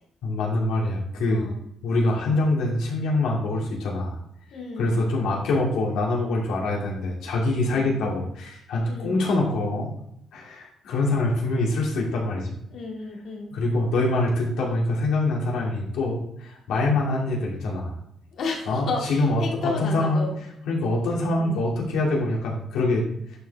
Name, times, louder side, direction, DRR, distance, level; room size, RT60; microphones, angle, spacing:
voice 1, 0.2-1.5 1.8-4.2 4.8-9.9 10.3-12.5 13.5-17.9 18.7-20.3 20.7-23.1, left 2 dB, 85° left, -2 dB, 2.4 m, -24 dB
voice 2, 1.3-1.6 4.5-5.0 7.6-7.9 8.9-9.1 12.7-13.5 18.3-20.3 21.4-21.6, left 4 dB, 65° left, 0 dB, 2.1 m, -32 dB
11.0 x 4.5 x 3.4 m, 0.75 s
cardioid pair, 90°, 0 cm